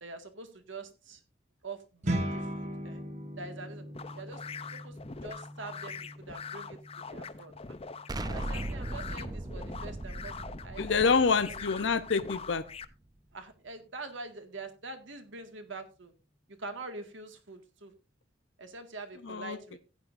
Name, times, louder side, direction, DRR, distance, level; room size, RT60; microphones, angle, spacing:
voice 1, 0.0-1.2 1.6-3.0 3.4-3.8 4.1-4.4 4.7-7.6 8.3-10.3 10.6-11.3 13.3-16.1 16.6-17.9 18.6-19.8, right 3 dB, 75° right, 7 dB, 1.9 m, -44 dB
sound 1, 2.0-11.5, right 1 dB, 40° right, 1.3 m, -41 dB
sound 2, 3.9-12.8, left 5 dB, 30° left, 0.6 m, -43 dB
Explosion, 8.1-12.9, right 1 dB, 20° right, 0.5 m, -39 dB
voice 2, 10.8-12.6 19.2-19.8, left 5 dB, 70° left, 11 dB, 0.8 m, -27 dB
15.5 x 9.6 x 2.6 m, 0.31 s
head